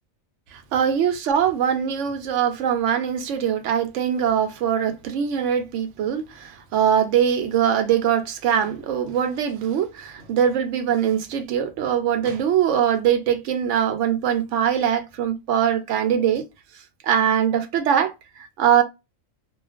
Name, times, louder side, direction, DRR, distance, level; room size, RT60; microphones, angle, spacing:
voice 1, 0.5-16.4 17.0-18.8, right 9 dB, 70° right, 0.8 m, -22 dB
2.3 x 2.2 x 2.4 m
omnidirectional pair, 1.4 m